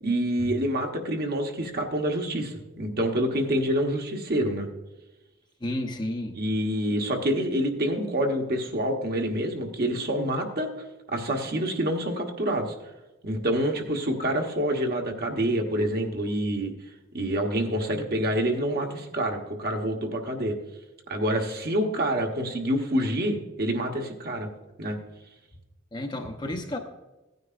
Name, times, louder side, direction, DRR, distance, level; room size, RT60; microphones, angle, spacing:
voice 1, 0.0-4.7 6.3-10.7 11.1-12.7 13.2-16.7 17.1-20.6 21.1-24.5 24.8-25.0, right 1 dB, 50° right, 2 dB, 1.2 m, -27 dB
voice 2, 5.6-6.4 25.9-26.8, left 1 dB, 20° left, 4 dB, 0.8 m, -32 dB
16.0 x 9.5 x 2.5 m, 1.1 s
head